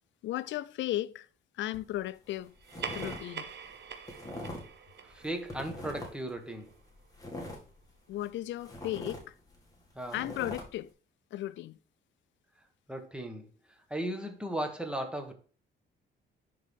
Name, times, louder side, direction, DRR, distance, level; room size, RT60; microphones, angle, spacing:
voice 1, 0.2-1.3 1.6-2.5 2.9-3.5 8.1-9.2 10.1-10.9 11.3-11.8, left 14 dB, 70° left, 0.4 m, -35 dB
sound 1, 1.7-2.0 2.3-3.2 3.5-4.8 5.1-6.3 6.7-8.3 8.6-10.6, left 1 dB, 15° left, 2.2 m, -42 dB
sound 2, 2.6-7.4, right 7 dB, 60° right, 1.0 m, -45 dB
voice 2, 5.0-6.7 9.9-10.2 12.9-15.3, right 1 dB, 5° right, 1.4 m, -37 dB
10.5 x 3.8 x 3.6 m
cardioid pair, 90°, 20 cm